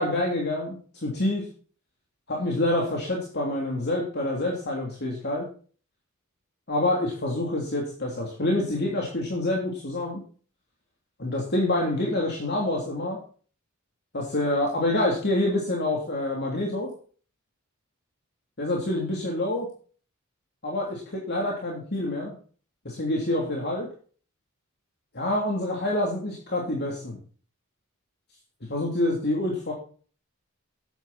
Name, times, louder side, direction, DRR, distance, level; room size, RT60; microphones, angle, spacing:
voice 1, 0.0-1.4 2.3-5.5 6.7-10.2 11.2-13.2 14.1-16.9 18.6-19.7 20.6-22.3 22.8-23.9 25.1-27.2 28.7-29.7, left 1 dB, 50° left, -1 dB, 3.3 m, -27 dB
12.5 x 10.0 x 4.3 m, 0.42 s
head